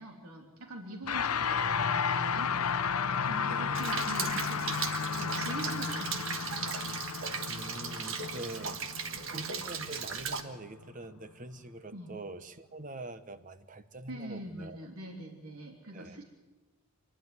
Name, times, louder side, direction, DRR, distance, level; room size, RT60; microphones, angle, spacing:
voice 1, 0.0-2.5 3.3-4.8 5.2-6.7 8.2-8.3 9.1-9.3 11.9-12.1 14.1-16.2, right 1 dB, 90° right, 1 dB, 3.1 m, -43 dB
sound 1, 1.0-10.5, left 6 dB, 85° left, 0.8 m, -33 dB
voice 2, 3.4-3.9 7.5-8.8 9.3-14.8 15.9-16.2, right 2 dB, 35° right, 11 dB, 1.0 m, -44 dB
Rain, 3.7-10.4, right 6 dB, 65° right, 1.5 m, -37 dB
27.0 x 11.5 x 9.6 m, 1.1 s
head